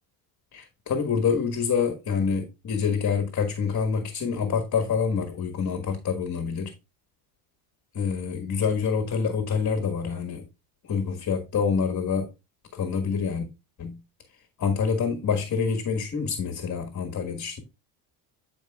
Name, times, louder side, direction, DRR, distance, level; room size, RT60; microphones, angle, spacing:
voice 1, 0.5-6.7 7.9-10.4 10.8-12.3 12.7-13.4 13.8-14.0 14.6-17.6, left 6 dB, 35° left, 1.6 m, -26 dB
12.5 x 4.9 x 2.4 m
supercardioid pair, 95°, 49 cm